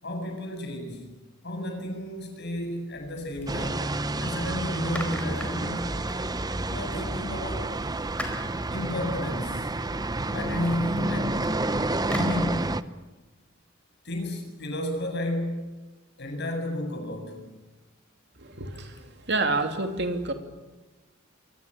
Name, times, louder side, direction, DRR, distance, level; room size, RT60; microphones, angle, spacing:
voice 1, 0.0-1.1 1.4-5.9 6.7-7.8 8.7-9.7 10.3-11.4 12.0-12.8 14.0-15.8 16.2-17.5, left 1 dB, 55° left, 4 dB, 7.6 m, -32 dB
sound 1, 3.2-4.2 4.6-6.8 7.4-12.4, left 1 dB, 5° left, 4.6 m, -43 dB
sound 2, 3.5-12.8, right 2 dB, 20° right, 0.8 m, -29 dB
voice 2, 18.4-19.0 19.3-20.3, right 3 dB, 55° right, 6 dB, 2.9 m, -28 dB
26.5 x 24.0 x 8.9 m, 1.2 s
head